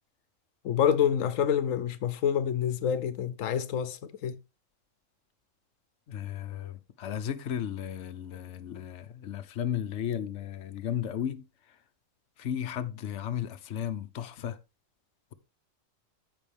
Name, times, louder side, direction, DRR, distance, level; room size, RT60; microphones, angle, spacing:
voice 1, 0.6-4.4, left 8 dB, 90° left, 1.1 m, -27 dB
voice 2, 6.1-11.4 12.4-14.6, left 9 dB, 65° left, 1.1 m, -34 dB
14.5 x 5.5 x 3.4 m
omnidirectional pair, 1.3 m